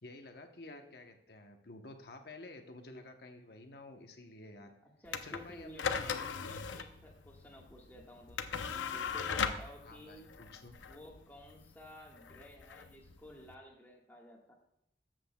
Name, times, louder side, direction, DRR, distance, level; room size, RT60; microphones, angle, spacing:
voice 1, 0.0-4.7 5.2-6.3 9.8-10.8, left 2 dB, 55° left, 5 dB, 0.9 m, -51 dB
voice 2, 5.0-10.3 10.9-14.5, equal, 10° left, -1 dB, 1.5 m, -53 dB
sound 1, 5.1-13.5, left 6 dB, 90° left, 0.6 m, -39 dB
13.0 x 7.7 x 2.3 m, 0.81 s
head